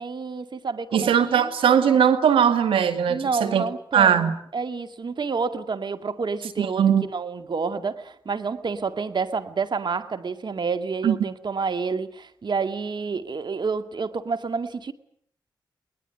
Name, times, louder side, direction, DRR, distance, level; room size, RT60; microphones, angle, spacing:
voice 1, 0.0-1.5 3.1-14.9, right 5 dB, 60° right, 10 dB, 2.2 m, -29 dB
voice 2, 0.9-3.6 3.9-4.4 6.6-7.0 11.0-11.1, right 8 dB, 90° right, 10 dB, 2.2 m, -19 dB
23.5 x 20.5 x 9.4 m, 0.66 s
cardioid pair, 50°, 9 cm